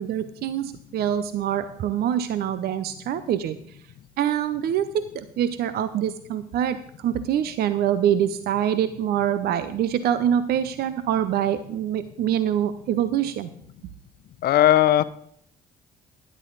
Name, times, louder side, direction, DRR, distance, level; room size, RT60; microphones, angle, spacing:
voice 1, 0.0-3.8 4.2-13.5, right 10 dB, 65° right, 13 dB, 0.6 m, -25 dB
voice 2, 14.4-15.0, left 12 dB, 60° left, 15 dB, 0.7 m, -17 dB
12.5 x 10.5 x 4.0 m, 0.69 s
supercardioid pair, 65°, 18 cm